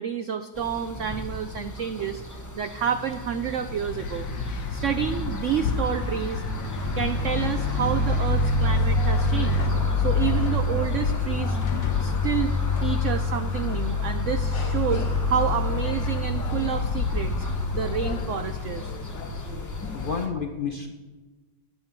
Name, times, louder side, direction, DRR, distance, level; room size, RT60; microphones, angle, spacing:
voice 1, 0.0-2.2 2.5-6.4 6.9-9.6 10.0-11.6 12.0-12.5 12.8-17.5 17.7-18.9, right 8 dB, 75° right, 9 dB, 0.6 m, -29 dB
sound 1, 0.6-20.3, left 2 dB, 15° left, 0.8 m, -28 dB
sound 2, 3.6-9.7, left 5 dB, 60° left, 1.2 m, -34 dB
sound 3, 6.7-20.3, left 6 dB, 80° left, 1.6 m, -35 dB
voice 2, 19.9-20.9, left 5 dB, 45° left, 4 dB, 0.7 m, -30 dB
15.0 x 9.5 x 4.6 m, 1.2 s
omnidirectional pair, 1.9 m